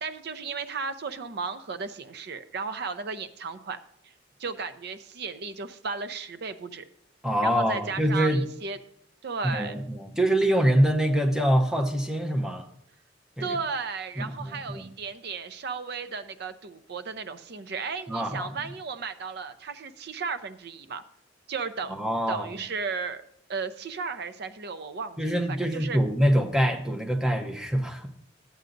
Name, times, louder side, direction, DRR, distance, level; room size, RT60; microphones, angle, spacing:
voice 1, 0.0-3.8 4.0-4.1 4.4-6.8 7.4-8.8 9.2-9.8 13.4-21.0 21.5-21.9 22.3-23.2 23.5-25.2 25.5-26.0, right 5 dB, 60° right, 11 dB, 0.5 m, -34 dB
voice 2, 7.2-8.4 9.4-12.7 13.4-13.6 14.2-14.9 18.1-18.6 21.9-22.5 25.2-28.1, equal, 5° right, 3 dB, 0.7 m, -25 dB
12.5 x 7.9 x 2.6 m, 0.71 s
head